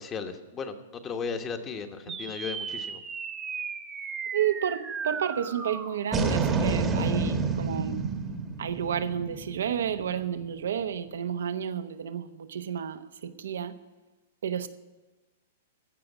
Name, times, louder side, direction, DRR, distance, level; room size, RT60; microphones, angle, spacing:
voice 1, 0.0-3.0, left 5 dB, 20° left, 7 dB, 1.1 m, -36 dB
sound 1, 2.1-10.7, right 4 dB, 15° right, 1.1 m, -31 dB
voice 2, 4.3-8.0 8.6-13.8 14.4-14.7, right 8 dB, 80° right, 11 dB, 0.9 m, -31 dB
15.0 x 5.1 x 9.1 m, 1.2 s
hypercardioid pair, 145°, 0 cm